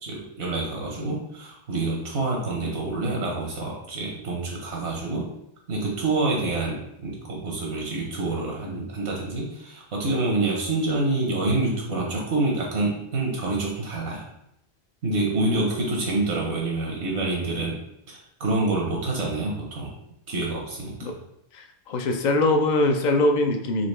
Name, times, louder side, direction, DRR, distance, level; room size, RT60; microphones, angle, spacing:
voice 1, 0.0-5.3 5.7-14.2 15.0-17.8 18.1-19.9 20.3-21.1, right 2 dB, 75° right, -2 dB, 1.1 m, -27 dB
voice 2, 21.5-23.9, left 2 dB, 55° left, 5 dB, 0.5 m, -22 dB
4.2 x 2.9 x 3.2 m, 0.81 s
omnidirectional pair, 1.1 m